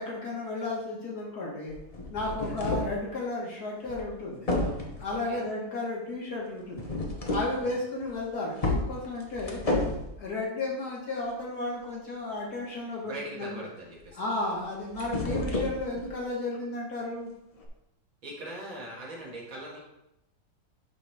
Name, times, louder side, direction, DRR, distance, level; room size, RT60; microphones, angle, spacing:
voice 1, 0.0-1.7 2.1-4.5 5.0-6.9 7.3-9.6 10.2-13.6 14.2-17.3, left 2 dB, 55° left, -3 dB, 1.8 m, -33 dB
sound 1, 1.7-3.0 3.9-4.1 4.5-5.1 6.7-7.6 8.0-8.1 8.6-10.1 14.6-16.2 17.6-17.7, left 2 dB, 30° left, 0.7 m, -31 dB
voice 2, 2.2-2.7 5.1-5.5 7.5-7.8 13.0-14.2 18.2-19.8, right 1 dB, 85° right, -4 dB, 2.7 m, -42 dB
11.5 x 3.8 x 3.4 m, 0.88 s
omnidirectional pair, 2.0 m